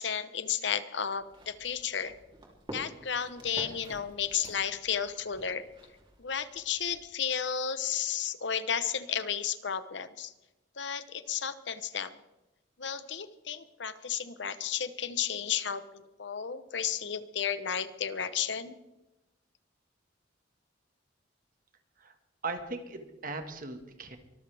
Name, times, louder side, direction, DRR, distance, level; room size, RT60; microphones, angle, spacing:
voice 1, 0.0-2.1 2.7-5.6 6.2-10.3 10.8-12.1 12.8-18.8, left 8 dB, 65° left, 13 dB, 0.9 m, -33 dB
sound 1, 1.1-7.1, right 1 dB, 25° right, 3.2 m, -50 dB
voice 2, 22.4-24.2, right 3 dB, 45° right, 7 dB, 1.7 m, -38 dB
23.5 x 14.0 x 3.5 m, 0.98 s
head